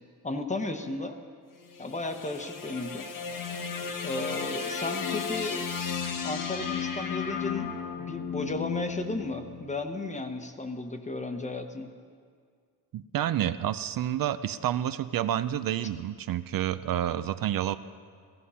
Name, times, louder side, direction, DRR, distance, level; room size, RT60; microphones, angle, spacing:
voice 1, 0.2-1.2 1.8-3.1 4.0-5.7 6.2-11.9, left 2 dB, 20° left, 7 dB, 0.9 m, -34 dB
sound 1, 1.6-9.9, left 6 dB, 55° left, 1.2 m, -34 dB
voice 2, 12.9-17.8, right 11 dB, 60° right, 12 dB, 0.5 m, -29 dB
16.0 x 15.0 x 5.6 m, 2.1 s
wide cardioid pair, 160°, 40 cm